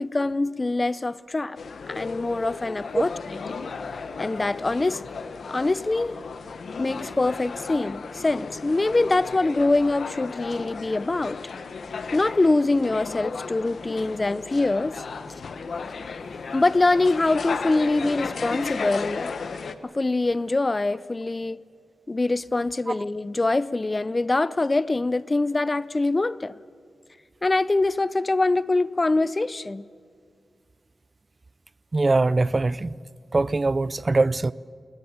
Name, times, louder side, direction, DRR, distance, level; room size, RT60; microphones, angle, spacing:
voice 1, 0.0-1.6 1.9-3.1 3.5-3.6 4.2-5.0 5.5-6.1 6.8-11.4 12.1-15.0 16.5-19.3 19.8-21.6 22.1-26.5 27.4-29.9, left 2 dB, 30° left, 0.5 m, -24 dB
sound 1, 1.6-19.8, left 5 dB, 75° left, 1.1 m, -35 dB
voice 2, 31.9-32.9 33.3-34.5, right 3 dB, 35° right, 0.5 m, -22 dB
20.5 x 19.5 x 8.7 m
wide cardioid pair, 80°, 0 cm